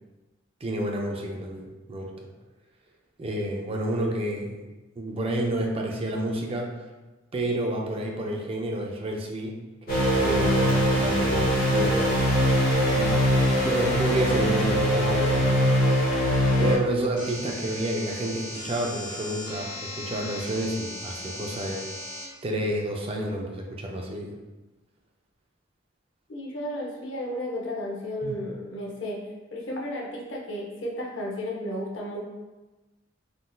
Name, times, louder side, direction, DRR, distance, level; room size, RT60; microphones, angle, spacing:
voice 1, 0.6-2.1 3.2-4.6 5.0-6.7 7.3-9.5 9.9-12.5 12.9-13.1 13.6-21.8 22.4-24.4 28.2-28.4, right 1 dB, 30° right, 0 dB, 0.4 m, -30 dB
sound 1, 9.9-16.8, equal, 50° left, 1.0 m, -22 dB
sound 2, 17.2-22.2, left 1 dB, 25° left, 1.1 m, -38 dB
voice 2, 26.3-32.2, left 1 dB, 75° left, -2 dB, 0.7 m, -33 dB
3.6 x 2.5 x 2.3 m, 1.1 s
head